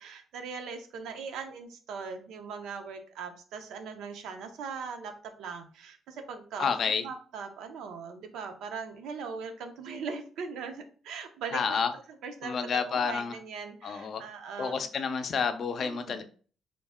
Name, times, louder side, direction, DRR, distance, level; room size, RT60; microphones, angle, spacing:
voice 1, 0.0-6.7 7.0-11.8 12.2-14.8 15.8-16.2, right 5 dB, 85° right, 6 dB, 0.6 m, -40 dB
voice 2, 6.6-7.0 11.5-11.9 12.4-13.4 13.8-14.2 14.6-16.2, left 6 dB, 55° left, 8 dB, 0.4 m, -29 dB
3.7 x 2.1 x 3.5 m, 0.41 s
cardioid pair, 90°, 0 cm